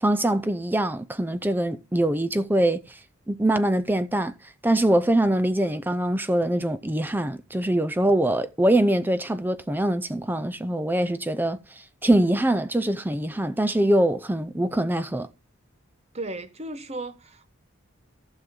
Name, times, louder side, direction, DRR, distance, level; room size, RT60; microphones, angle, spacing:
voice 1, 0.0-3.0 3.3-4.3 4.6-15.3, right 1 dB, 10° right, 0.5 m, -23 dB
voice 2, 16.1-17.5, right 2 dB, 30° right, 1.1 m, -35 dB
14.5 x 6.4 x 3.8 m
head